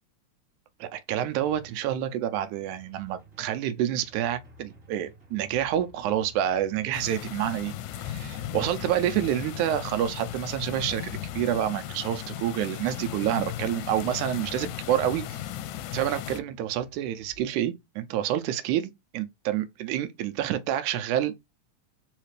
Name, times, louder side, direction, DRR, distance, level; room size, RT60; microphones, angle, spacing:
voice 1, 0.8-15.4 15.9-21.4, right 11 dB, 80° right, 1.9 m, -28 dB
Drum, 1.1-17.5, right 2 dB, 30° right, 2.3 m, -53 dB
sound 1, 6.9-16.4, left 12 dB, 80° left, 1.8 m, -36 dB
4.9 x 3.2 x 3.2 m
omnidirectional pair, 3.7 m